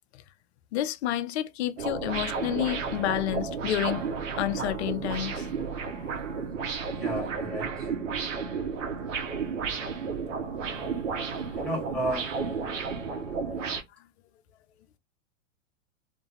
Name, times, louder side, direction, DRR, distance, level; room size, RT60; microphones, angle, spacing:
voice 1, 0.7-4.0 4.4-5.5 6.0-6.2, left 13 dB, 55° left, 0.5 m, -29 dB
sound 1, 1.8-13.8, right 5 dB, 70° right, 0.8 m, -32 dB
voice 2, 6.9-7.9 11.5-12.3, right 1 dB, 5° left, 1.1 m, -32 dB
2.5 x 2.2 x 2.7 m
hypercardioid pair, 105°, 39 cm